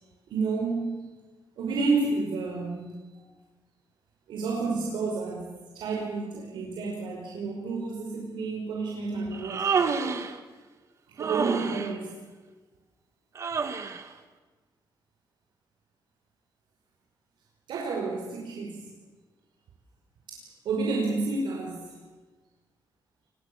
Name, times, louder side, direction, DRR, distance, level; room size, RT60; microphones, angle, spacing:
voice 1, 0.3-1.1 1.6-2.9 4.3-10.1 11.1-12.2 13.5-13.6 17.7-18.9 20.3-21.9, right 3 dB, 75° right, -1 dB, 5.4 m, -30 dB
Human voice, 9.3-10.4 11.2-11.9 13.4-14.1, right 5 dB, 40° right, 1.9 m, -28 dB
28.0 x 22.5 x 7.1 m, 1.3 s
cardioid pair, 155°, 8 cm